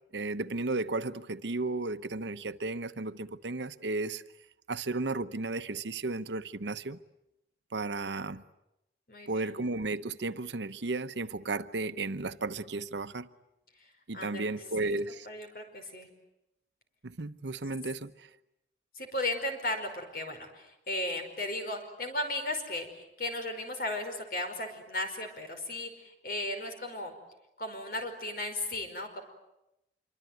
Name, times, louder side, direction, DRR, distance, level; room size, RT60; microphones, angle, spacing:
voice 1, 0.1-4.2 4.7-7.0 7.7-8.4 9.3-13.3 14.1-15.3 17.0-18.3, right 3 dB, 80° right, 1.0 m, -34 dB
voice 2, 9.1-9.6 14.1-14.6 14.8-15.0 15.3-16.1 19.0-27.1 27.6-29.2, left 1 dB, 55° left, 5.3 m, -36 dB
26.5 x 24.5 x 9.4 m
head